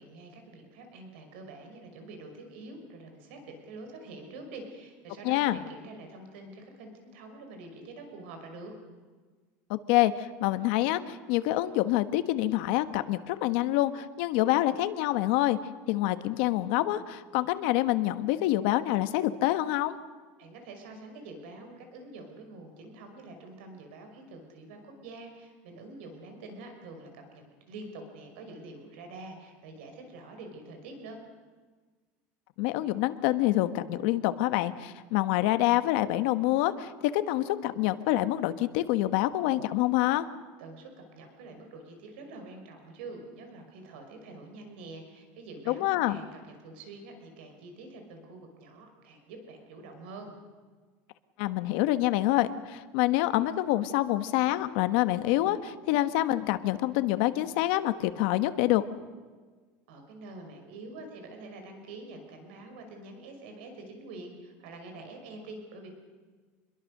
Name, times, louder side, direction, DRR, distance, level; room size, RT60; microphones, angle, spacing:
voice 1, 0.0-8.7 20.4-31.2 40.6-50.3 59.9-65.9, right 2 dB, 90° right, 5 dB, 5.6 m, -46 dB
voice 2, 5.2-5.6 9.7-15.6 15.9-20.0 32.6-40.3 45.7-46.2 51.4-58.8, left 15 dB, 65° left, 11 dB, 1.2 m, -26 dB
27.0 x 22.0 x 6.6 m, 1.4 s
cardioid pair, 175°, 6 cm